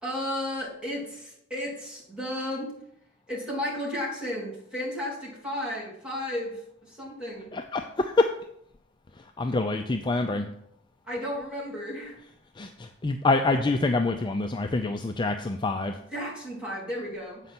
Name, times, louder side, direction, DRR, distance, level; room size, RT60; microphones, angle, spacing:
voice 1, 0.0-2.7 3.3-6.6 6.9-7.5 11.1-12.2 16.1-17.4, left 1 dB, 5° right, -6 dB, 3.0 m, -33 dB
voice 2, 7.5-8.3 9.4-10.5 12.6-16.0, left 3 dB, 25° left, 6 dB, 0.4 m, -26 dB
8.1 x 5.3 x 5.8 m, 0.74 s
head